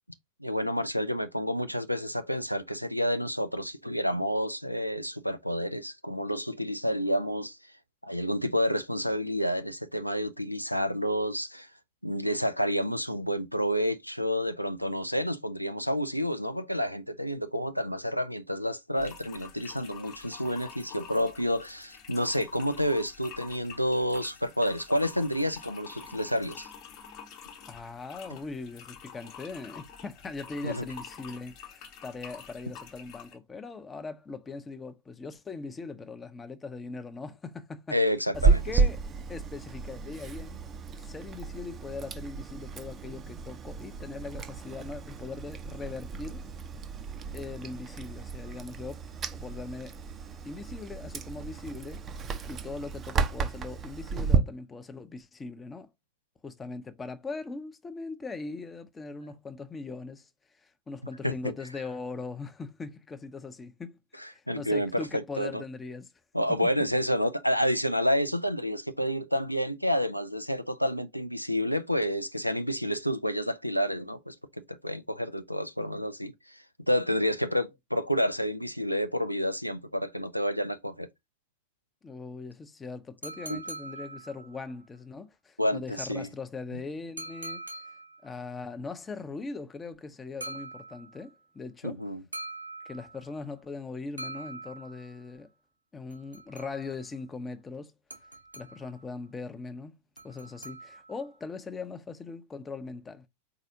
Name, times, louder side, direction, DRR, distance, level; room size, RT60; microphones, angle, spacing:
voice 1, 0.4-7.6 8.0-11.7 12.0-26.7 30.6-30.9 37.9-38.6 61.2-61.3 64.2-65.6 66.3-74.4 74.7-81.1 83.5-83.6 85.6-86.3 91.8-92.2, equal, 90° left, 0.4 m, -29 dB
sound 1, 19.0-33.4, left 7 dB, 40° left, 1.1 m, -48 dB
voice 2, 27.7-38.0 38.3-39.0 39.3-40.6 41.0-46.4 47.3-49.0 49.3-50.0 50.4-55.9 56.4-60.3 60.6-66.1 66.5-66.9 82.0-87.6 88.2-92.0 92.8-95.5 95.9-97.9 98.5-100.0 100.2-103.3, left 4 dB, 15° left, 0.6 m, -40 dB
Chewing mastication, 38.3-54.4, right 5 dB, 25° right, 0.6 m, -32 dB
sound 2, 83.2-84.7 87.2-88.3 90.4-91.3 92.3-93.4 94.2-95.2 96.1-97.1 98.1-99.0 100.2-101.3, right 2 dB, 85° right, 0.8 m, -43 dB
4.8 x 4.1 x 2.6 m
figure-of-eight pair, 90°, 0 cm